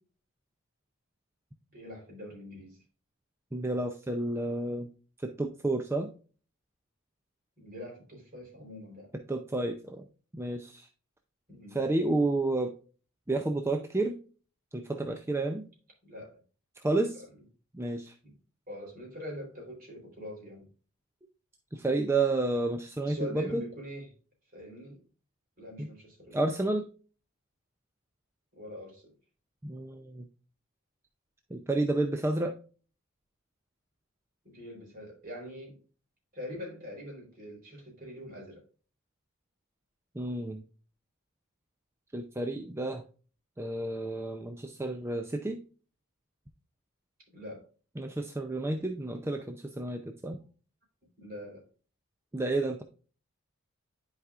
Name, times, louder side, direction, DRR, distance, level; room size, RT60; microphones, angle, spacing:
voice 1, 1.7-2.8 7.6-9.1 11.5-11.8 16.0-16.4 17.1-17.3 18.2-18.4 18.7-20.7 23.0-24.1 24.5-25.0 25.6-26.4 28.5-29.1 34.4-35.8 36.3-38.6 47.3-47.7 51.0-51.6, equal, 40° right, 0 dB, 3.7 m, -43 dB
voice 2, 3.5-4.9 5.2-6.1 9.3-10.0 10.3-10.9 11.7-12.7 13.3-14.2 14.7-15.7 16.8-17.2 17.7-18.1 21.7-23.6 25.8-25.9 26.3-26.9 29.6-30.2 31.5-32.5 40.1-40.6 42.1-43.0 43.6-45.6 48.0-50.4 52.3-52.8, right 2 dB, 10° right, 5 dB, 0.5 m, -30 dB
10.5 x 4.9 x 2.4 m, 0.38 s
head